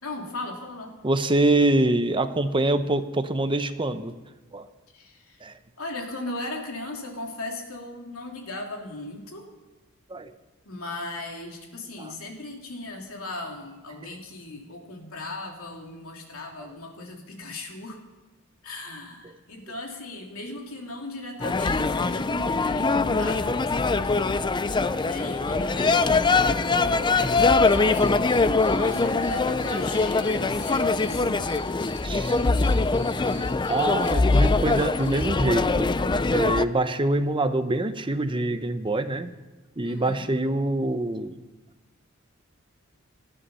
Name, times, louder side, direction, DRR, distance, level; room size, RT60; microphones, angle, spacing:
voice 1, 0.0-0.9 4.9-5.4 5.8-9.4 10.6-18.0 18.6-24.5 25.1-28.1 28.7-31.6 39.8-40.3, left 2 dB, 70° left, 1 dB, 3.1 m, -37 dB
voice 2, 1.0-4.1 4.5-4.7 5.4-5.5 10.1-10.3 12.0-12.1 16.6-16.7 24.9-25.0 25.7-25.9 31.9-32.4 33.1-35.9 36.3-39.3 39.8-41.3, right 2 dB, 25° right, 10 dB, 0.8 m, -25 dB
sound 1, 21.4-36.6, left 3 dB, 20° left, 0.4 m, -23 dB
sound 2, 27.4-36.3, left 2 dB, 35° left, 7.2 m, -49 dB
19.0 x 13.0 x 5.6 m, 1.2 s
head